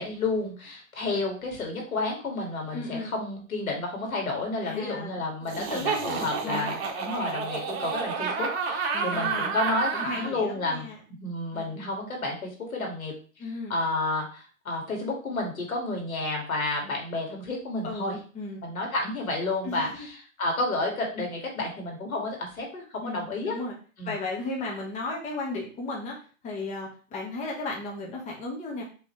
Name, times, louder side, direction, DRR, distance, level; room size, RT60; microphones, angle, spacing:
voice 1, 0.0-10.9 11.2-13.1 13.7-18.2 18.6-20.1 20.4-23.6 24.0-24.2, left 2 dB, 85° left, 1 dB, 2.2 m, -31 dB
voice 2, 2.7-3.1 4.6-6.7 8.9-9.5 9.9-11.0 11.5-11.7 13.4-13.8 17.8-18.6 19.6-20.1 23.0-23.8 24.0-26.2 26.4-28.8, left 2 dB, 15° left, -1 dB, 1.1 m, -35 dB
Laughter, 5.5-10.3, right 5 dB, 50° right, 1.1 m, -30 dB
5.2 x 3.2 x 3.2 m, 0.39 s
hypercardioid pair, 135°, 41 cm